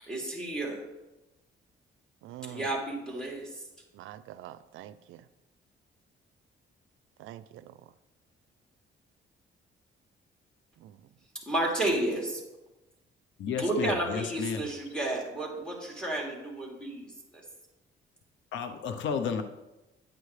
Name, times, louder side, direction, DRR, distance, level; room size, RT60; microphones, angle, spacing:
voice 1, 0.1-0.9 2.4-3.6 11.5-12.4 13.6-17.4, right 1 dB, 5° left, -2 dB, 3.0 m, -32 dB
voice 2, 2.2-2.7 3.9-5.2 7.2-7.8 10.8-11.0, right 12 dB, 85° right, 15 dB, 0.4 m, -45 dB
voice 3, 13.4-14.7 18.5-19.4, left 6 dB, 75° left, 8 dB, 0.7 m, -32 dB
9.4 x 9.0 x 3.3 m, 1.0 s
cardioid pair, 90°, 20 cm